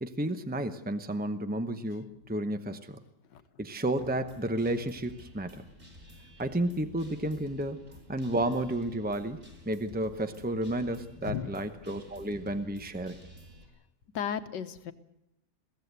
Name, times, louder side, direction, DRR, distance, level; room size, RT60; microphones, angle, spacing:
voice 1, 0.0-3.0 3.6-5.6 6.4-7.8 8.1-13.2, right 1 dB, 15° right, 9 dB, 0.3 m, -32 dB
Guitar, 4.0-13.7, left 1 dB, 30° right, 5.1 m, -52 dB
voice 2, 14.1-14.9, left 8 dB, 75° left, 11 dB, 1.7 m, -34 dB
22.0 x 16.0 x 8.1 m, 0.87 s
omnidirectional pair, 1.9 m